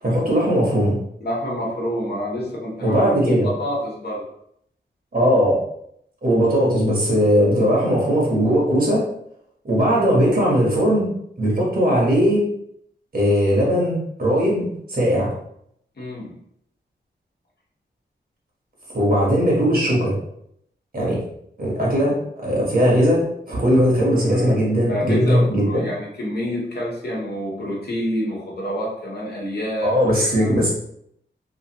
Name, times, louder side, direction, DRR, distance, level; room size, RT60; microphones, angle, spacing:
voice 1, 0.0-1.0 2.8-3.5 5.1-5.6 6.2-9.0 9.6-11.1 11.4-12.4 13.1-15.3 18.9-20.1 20.9-21.2 21.6-25.8 29.8-30.7, equal, 50° right, -4 dB, 1.4 m, -19 dB
voice 2, 1.2-4.3 16.0-16.4 24.2-24.6 24.9-30.7, equal, 60° left, -4 dB, 1.2 m, -28 dB
3.1 x 2.6 x 2.9 m, 0.72 s
wide cardioid pair, 80°, 19 cm